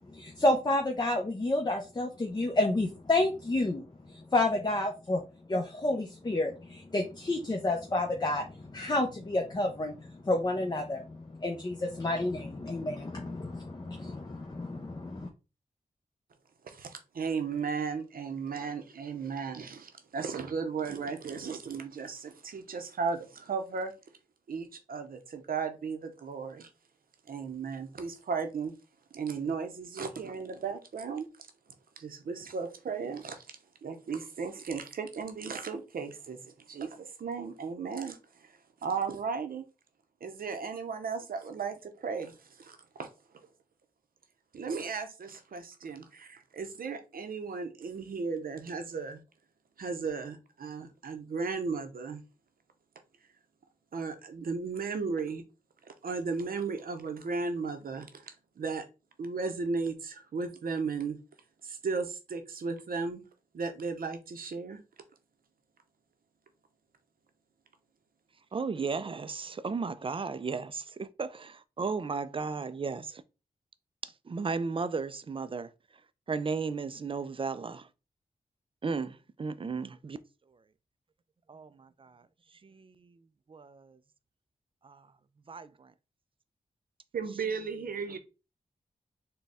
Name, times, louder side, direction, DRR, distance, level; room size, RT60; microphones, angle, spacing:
voice 1, 0.1-5.2 5.5-15.3, left 2 dB, 25° left, 0.6 m, -30 dB
voice 2, 16.6-23.9 24.5-26.7 27.3-28.7 29.1-31.3 32.0-33.4 33.8-39.6 40.2-43.1 44.5-49.2 49.8-52.2 53.9-55.4 55.8-58.8 59.2-61.2 61.6-63.2 63.5-64.8 87.1-88.2, right 5 dB, 70° right, 0.7 m, -35 dB
voice 3, 68.5-73.1 74.3-75.7 76.3-77.8 78.8-80.2 81.5-81.7 83.5-83.7 85.5-85.7, right 4 dB, 35° right, 0.4 m, -34 dB
4.0 x 2.2 x 3.5 m
cardioid pair, 55°, 15 cm